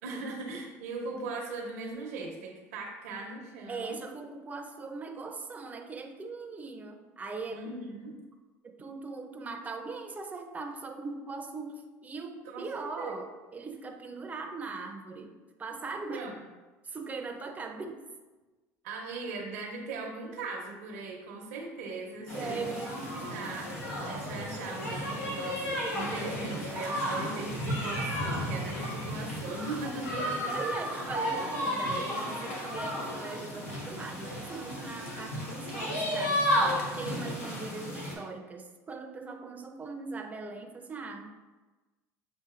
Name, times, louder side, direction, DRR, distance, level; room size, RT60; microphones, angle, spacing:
voice 1, 0.0-4.0 7.5-8.2 12.5-13.2 16.1-16.3 18.8-22.7 23.1-30.5, right 3 dB, 85° right, 0 dB, 0.7 m, -39 dB
voice 2, 3.7-7.7 8.6-13.3 13.5-16.3 16.8-18.1 22.1-23.2 26.6-26.8 30.5-36.5 37.0-41.3, right 4 dB, 20° right, 5 dB, 0.5 m, -40 dB
sound 1, 22.3-38.1, equal, 90° left, 1.1 m, -33 dB
6.7 x 2.6 x 2.4 m, 1.2 s
supercardioid pair, 95°, 8 cm